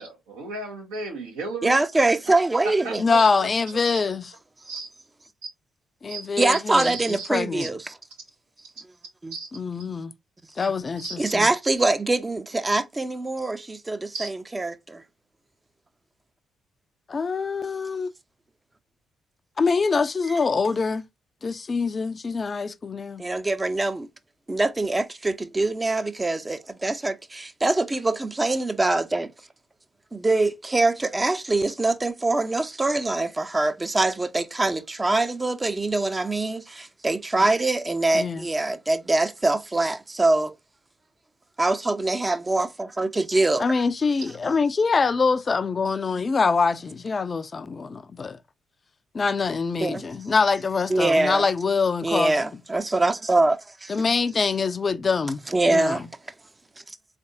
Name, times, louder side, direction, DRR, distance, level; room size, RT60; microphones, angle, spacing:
voice 1, 0.0-1.8 2.6-3.5 3.8-4.0 4.7-4.9 6.1-6.2 6.5-7.3 7.6-7.7 9.3-9.5 11.0-11.1 14.1-14.3, right 3 dB, 75° right, 1.4 m, -34 dB
voice 2, 1.6-3.0 6.4-7.9 9.2-9.3 11.2-15.0 20.3-20.4 23.2-24.1 24.5-29.3 30.1-40.5 41.6-43.7 49.8-50.0 50.9-51.5 52.0-54.0 55.5-56.0, right 2 dB, 20° right, 0.7 m, -24 dB
voice 3, 3.0-4.3 6.0-7.7 9.5-10.1 10.6-11.5 17.1-18.1 19.6-21.0 21.4-23.2 38.1-38.4 43.6-48.4 49.1-52.5 53.9-55.4 55.7-56.0, left 4 dB, 40° left, 0.5 m, -24 dB
3.9 x 3.3 x 2.6 m
figure-of-eight pair, 40°, 0 cm